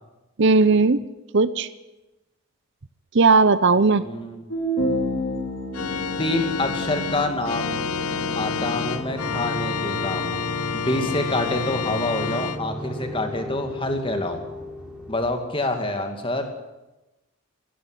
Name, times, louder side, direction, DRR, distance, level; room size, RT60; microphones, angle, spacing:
voice 1, 0.4-1.0 1.3-1.7 3.1-4.0, right 4 dB, 55° right, 15 dB, 0.7 m, -17 dB
voice 2, 4.0-4.4 6.2-7.8 8.3-10.3 10.7-14.4 15.1-16.5, left 2 dB, 25° left, 6 dB, 2.4 m, -27 dB
sound 1, 4.5-9.8, equal, 55° left, 5.6 m, -31 dB
Organ, 5.7-12.6, left 5 dB, 85° left, 1.1 m, -28 dB
sound 2, 7.2-15.2, equal, 5° right, 3.8 m, -36 dB
17.5 x 16.0 x 9.9 m, 1.0 s
head